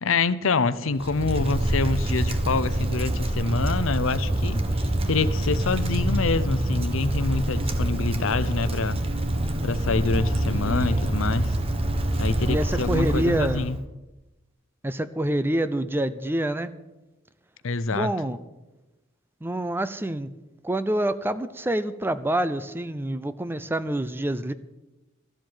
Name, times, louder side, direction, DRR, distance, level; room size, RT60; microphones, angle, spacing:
voice 1, 0.0-9.0 9.6-11.5 12.2-13.8 17.6-18.1, left 4 dB, 80° left, 15 dB, 0.7 m, -26 dB
Wind, 1.0-13.8, right 1 dB, 30° right, 1.2 m, -26 dB
voice 2, 10.7-11.0 12.4-13.6 14.8-16.7 17.9-18.4 19.4-20.3 20.6-24.5, right 1 dB, 10° right, 13 dB, 0.5 m, -27 dB
13.5 x 7.7 x 9.0 m, 1.0 s
head